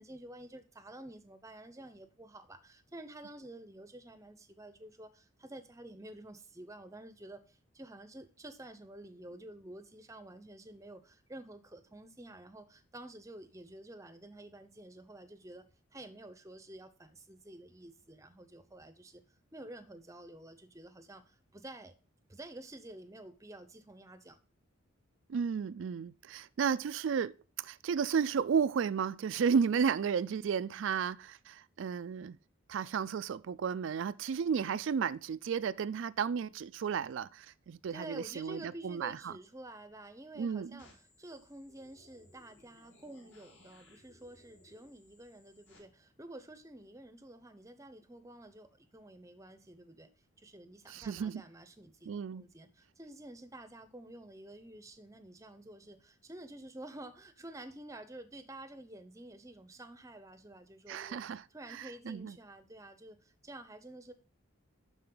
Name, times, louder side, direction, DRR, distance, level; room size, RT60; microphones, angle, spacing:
voice 1, 0.0-19.2 19.5-21.9 22.3-24.4 37.9-50.1 50.4-64.1, right 1 dB, 15° right, 0.6 m, -50 dB
voice 2, 25.3-32.4 32.7-39.3 40.4-40.8 50.9-51.4 52.1-52.4 60.9-61.4 61.7-62.3, right 6 dB, 70° right, 0.3 m, -33 dB
sound 1, 40.8-45.8, left 2 dB, 65° left, 3.9 m, -63 dB
11.5 x 4.3 x 3.7 m
head